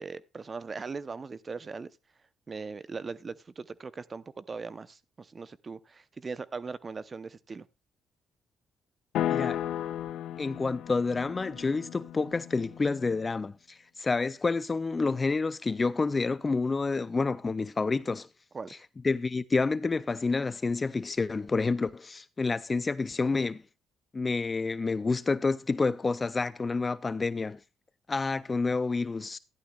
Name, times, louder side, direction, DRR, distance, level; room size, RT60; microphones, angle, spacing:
voice 1, 0.0-1.9 2.5-7.7 18.5-18.8, right 4 dB, 35° right, 0.7 m, -39 dB
sound 1, 9.1-13.3, left 11 dB, 80° left, 0.6 m, -34 dB
voice 2, 9.3-9.7 10.4-18.3 19.0-23.6 24.1-27.6 28.1-29.4, left 4 dB, 30° left, 0.4 m, -29 dB
13.0 x 11.0 x 2.3 m
supercardioid pair, 75°, 0 cm